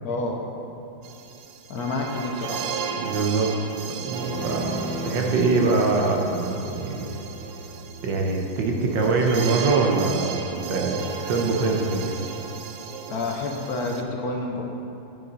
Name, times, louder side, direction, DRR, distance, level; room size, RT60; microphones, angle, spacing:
voice 1, 0.0-0.4 1.7-2.7 13.1-14.6, left 2 dB, 65° left, 1 dB, 1.0 m, -29 dB
sound 1, 1.0-14.0, right 6 dB, 85° right, 1.5 m, -35 dB
voice 2, 3.0-3.5 4.1-7.1 8.0-10.4 10.7-11.0 11.3-12.1, right 3 dB, 70° right, 1 dB, 1.3 m, -23 dB
sound 2, 4.2-11.9, equal, 45° left, 2.3 m, -38 dB
10.0 x 7.0 x 4.0 m, 2.7 s
omnidirectional pair, 2.3 m